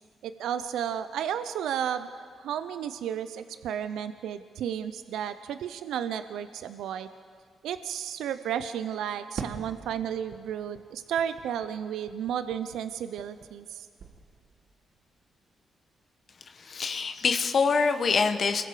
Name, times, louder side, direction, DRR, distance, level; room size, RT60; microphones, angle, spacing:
voice 1, 0.2-2.1 2.4-7.1 7.6-13.9, right 9 dB, 80° right, 11 dB, 0.6 m, -33 dB
Fireworks, 9.4-13.7 14.0-14.8, right 5 dB, 65° right, 1.6 m, -44 dB
voice 2, 16.6-18.6, left 5 dB, 55° left, 7 dB, 1.5 m, -25 dB
29.0 x 22.0 x 5.0 m, 2.1 s
supercardioid pair, 55°, 0 cm